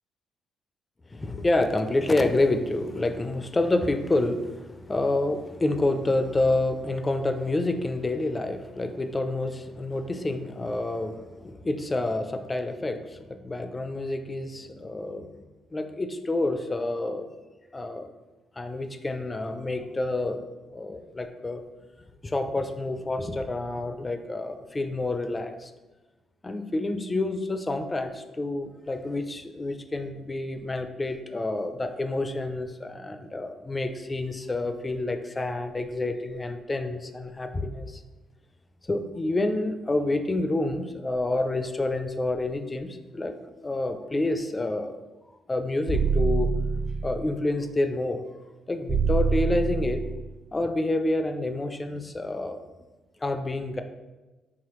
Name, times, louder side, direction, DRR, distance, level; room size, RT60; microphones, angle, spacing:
voice 1, 1.1-13.2 13.4-15.3 15.7-17.3 17.7-18.1 18.6-20.4 20.7-21.6 22.2-25.7 26.4-38.0 38.8-43.3 43.6-45.0 45.5-46.5 47.0-48.2 48.7-50.1 50.5-52.6 53.2-53.8, left 2 dB, 20° left, 7 dB, 0.4 m, -28 dB
sound 1, 45.9-47.3 48.9-50.3, right 5 dB, 55° right, 1.5 m, -25 dB
4.8 x 3.6 x 3.0 m, 1.1 s
cardioid pair, 90°, 0 cm